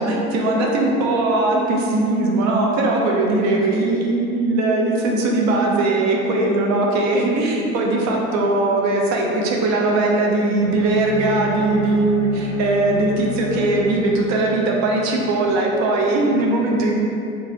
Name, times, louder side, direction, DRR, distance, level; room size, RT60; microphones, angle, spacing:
voice 1, 0.0-17.0, right 2 dB, 50° right, -1 dB, 0.5 m, -19 dB
Bowed string instrument, 10.6-14.8, left 2 dB, 25° left, 0.8 m, -31 dB
3.2 x 2.2 x 2.6 m, 2.7 s
figure-of-eight pair, 60°, 37 cm